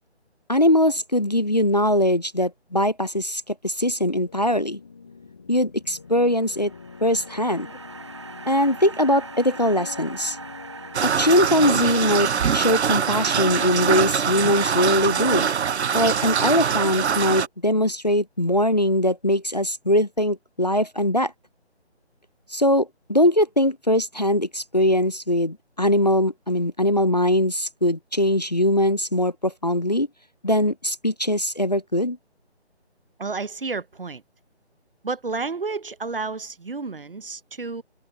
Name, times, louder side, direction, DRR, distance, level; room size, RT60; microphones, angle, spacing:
voice 1, 0.5-4.8 5.5-6.7 7.0-7.7 8.5-10.4 11.0-15.5 15.9-21.3 22.5-30.1 30.4-32.2, left 1 dB, 40° left, 0.4 m, -21 dB
sound 1, 4.3-13.6, left 5 dB, 10° left, 1.0 m, -44 dB
sound 2, 6.2-12.5, right 4 dB, 25° right, 1.1 m, -42 dB
sound 3, 10.9-17.5, right 7 dB, 75° right, 0.5 m, -23 dB
voice 2, 33.2-34.2 35.0-37.8, right 4 dB, 55° right, 0.8 m, -31 dB
figure-of-eight pair, 160°, 34 cm